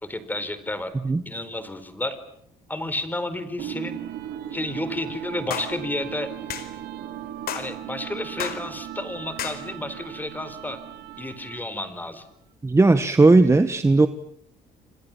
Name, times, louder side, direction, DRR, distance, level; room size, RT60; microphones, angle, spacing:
voice 1, 0.0-0.9 1.3-2.2 2.7-4.0 4.5-6.3 7.5-10.8 11.2-12.2, left 1 dB, 10° left, 12 dB, 4.3 m, -31 dB
sound 1, 3.6-11.8, right 11 dB, 80° right, 2.8 m, -37 dB
sound 2, 5.5-5.7 6.5-6.7 7.5-7.7 8.4-8.6 9.4-9.6, left 9 dB, 65° left, 4.5 m, -31 dB
voice 2, 12.6-14.1, right 3 dB, 15° right, 10 dB, 1.5 m, -16 dB
29.5 x 26.5 x 7.4 m, 0.69 s
cardioid pair, 110°, 17 cm